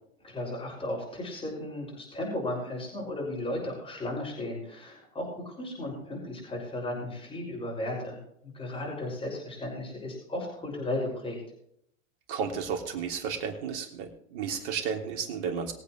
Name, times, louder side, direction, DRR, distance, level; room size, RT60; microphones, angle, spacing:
voice 1, 0.2-8.2 8.4-11.4, left 1 dB, 15° left, -2 dB, 6.3 m, -35 dB
voice 2, 12.3-15.7, right 6 dB, 55° right, 3 dB, 3.3 m, -33 dB
22.5 x 8.4 x 3.2 m, 0.71 s
hypercardioid pair, 110°, 41 cm